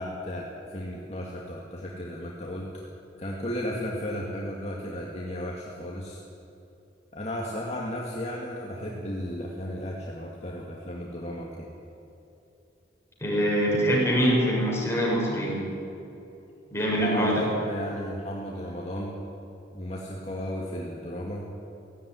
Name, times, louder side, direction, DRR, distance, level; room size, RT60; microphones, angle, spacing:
voice 1, 0.0-2.8 3.2-6.2 7.1-11.7 17.0-19.2 19.7-21.5, equal, 35° left, -3 dB, 2.2 m, -34 dB
voice 2, 13.2-15.6 16.7-17.5, equal, 15° left, -4 dB, 6.2 m, -24 dB
17.0 x 16.0 x 9.9 m, 2.8 s
head